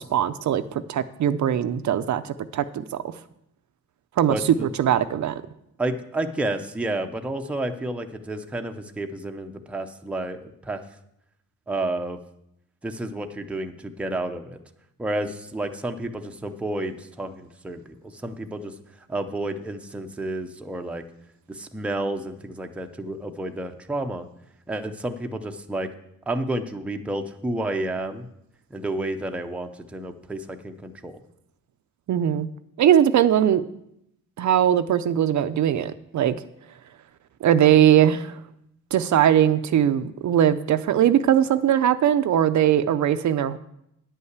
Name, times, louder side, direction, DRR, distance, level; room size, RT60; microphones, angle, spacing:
voice 1, 0.0-2.6 4.2-5.4 32.1-32.5 32.8-33.6 34.4-36.4 37.4-38.3 38.9-43.6, right 10 dB, 55° right, 11 dB, 0.5 m, -20 dB
voice 2, 4.3-4.7 5.8-10.8 11.7-12.2 12.8-14.6 15.0-18.7 19.1-21.0 21.5-24.3 24.7-25.9 26.3-28.3 28.7-31.2, right 1 dB, 5° right, 5 dB, 0.5 m, -30 dB
10.0 x 5.5 x 8.0 m, 0.79 s
wide cardioid pair, 175°, 34 cm